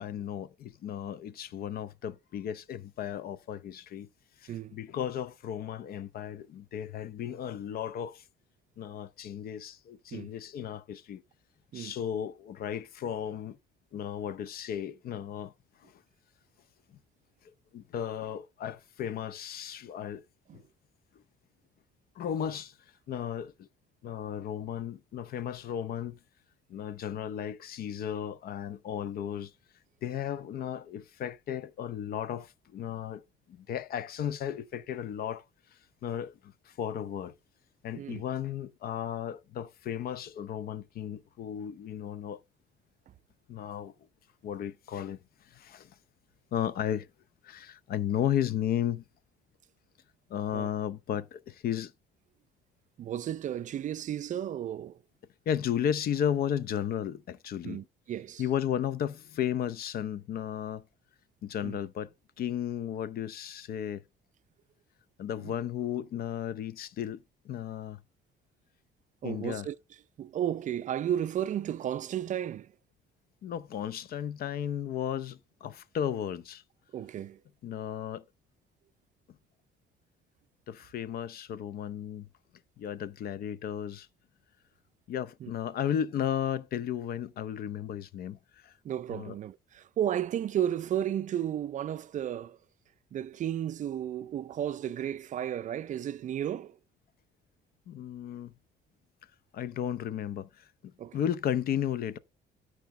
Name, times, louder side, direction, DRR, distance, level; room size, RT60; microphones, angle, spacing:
voice 1, 0.0-4.1 4.4-8.2 8.8-11.2 11.7-13.6 13.9-15.5 15.8-15.9 17.7-20.2 20.5-20.6 22.2-22.7 23.1-23.7 24.0-26.2 26.7-29.5 30.0-35.4 36.0-37.3 37.8-42.4 43.5-43.9 44.4-45.2 45.5-45.9 46.5-47.1 47.4-49.1 50.3-51.9 55.5-57.8 58.4-60.8 61.4-62.1 62.4-64.0 65.2-68.0 69.2-69.7 73.4-76.6 77.6-78.2 80.7-82.3 82.8-84.1 85.1-88.7 89.1-89.3 97.9-98.5 99.5-100.7 101.1-102.2, left 9 dB, 60° left, 0.6 m, -34 dB
voice 2, 53.0-55.0 57.6-58.4 61.6-61.8 65.4-65.6 69.2-69.8 70.2-72.7 76.9-77.4 85.4-85.5 88.8-92.6 93.1-96.8 101.0-101.2, right 10 dB, 45° right, 0.4 m, -33 dB
13.0 x 4.9 x 3.2 m
cardioid pair, 140°, 18 cm